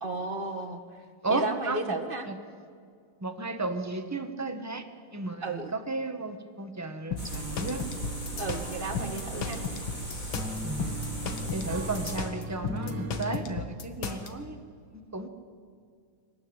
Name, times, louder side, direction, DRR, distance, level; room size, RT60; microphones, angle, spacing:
voice 1, 0.0-0.8 1.3-2.3 5.4-5.8 8.4-9.6, right 3 dB, 25° right, 6 dB, 1.6 m, -33 dB
voice 2, 1.2-2.0 2.3-2.4 3.2-4.9 5.1-7.8 10.6-10.9 11.5-14.6 14.9-15.3, right 3 dB, 10° right, 6 dB, 1.0 m, -33 dB
sound 1, 7.1-14.3, left 6 dB, 70° left, 2.2 m, -35 dB
sound 2, 7.2-12.2, right 1 dB, 20° left, 3.8 m, -38 dB
sound 3, 7.3-13.4, equal, 45° right, 2.3 m, -40 dB
23.0 x 18.5 x 8.8 m, 2.2 s
omnidirectional pair, 2.3 m